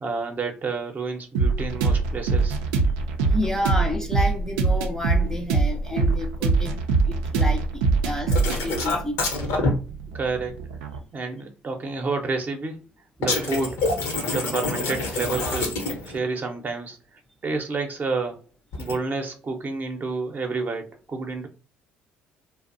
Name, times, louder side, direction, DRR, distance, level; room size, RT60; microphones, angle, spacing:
voice 1, 0.0-2.6 3.2-3.4 10.1-10.6 11.1-12.8 13.2-13.8 14.3-15.8 16.0-17.0 17.4-18.4 18.8-21.5, right 4 dB, 35° right, 0.6 m, -29 dB
sound 1, 1.3-11.0, right 4 dB, 75° right, 0.4 m, -23 dB
voice 2, 3.2-6.8 7.1-9.2, left 1 dB, 10° left, 0.4 m, -30 dB
sound 2, 8.3-9.7 13.2-16.2 18.7-19.0, left 3 dB, 70° left, 0.7 m, -26 dB
2.5 x 2.0 x 2.5 m
hypercardioid pair, 55°, 5 cm